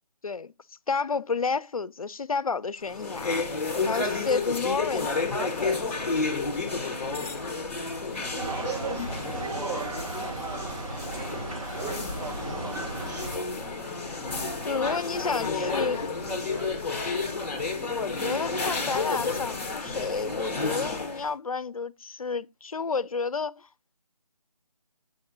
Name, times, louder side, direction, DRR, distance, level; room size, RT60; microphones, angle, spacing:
voice 1, 0.9-3.4 3.9-5.8 8.0-8.2 8.9-9.1 14.6-16.1 17.8-23.7, left 5 dB, 60° left, 0.5 m, -31 dB
sound 1, 2.8-21.3, left 3 dB, 20° left, 1.0 m, -31 dB
sound 2, 8.3-13.4, right 3 dB, 60° right, 4.0 m, -35 dB
voice 2, 8.5-10.9 12.2-13.5 14.7-17.1, right 1 dB, 90° right, 2.8 m, -42 dB
7.2 x 6.4 x 2.7 m
figure-of-eight pair, 160°, 20 cm